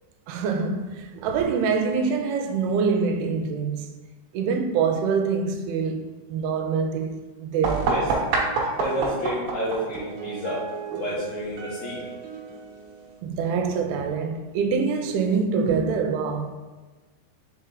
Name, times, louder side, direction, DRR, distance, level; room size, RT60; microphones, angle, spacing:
voice 1, 0.3-3.9 4.3-6.0 6.3-7.9 13.2-16.5, right 5 dB, 85° right, 2.5 m, -25 dB
sound 1, 7.6-13.2, right 4 dB, 65° right, 2.3 m, -29 dB
voice 2, 8.8-10.6 11.0-12.0, equal, 70° left, 2.9 m, -29 dB
6.5 x 4.4 x 3.8 m
omnidirectional pair, 4.5 m